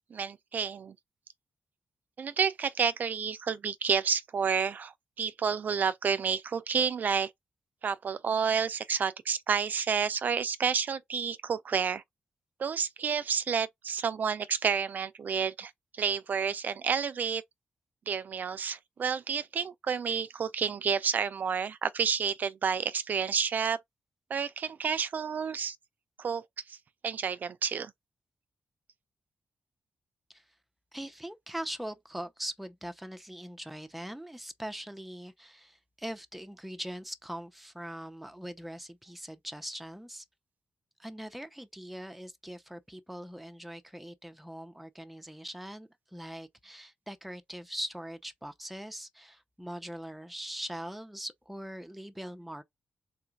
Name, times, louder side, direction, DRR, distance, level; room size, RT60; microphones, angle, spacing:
voice 1, 0.1-0.9 2.2-7.3 7.8-12.0 12.6-17.4 18.1-23.8 24.3-25.8 26.2-26.4 26.7-26.8 27.0-27.9, right 6 dB, 55° right, 0.4 m, -30 dB
voice 2, 30.9-40.2 41.0-52.6, right 1 dB, ahead, 0.6 m, -41 dB
3.8 x 2.4 x 4.5 m
wide cardioid pair, 110°, 4 cm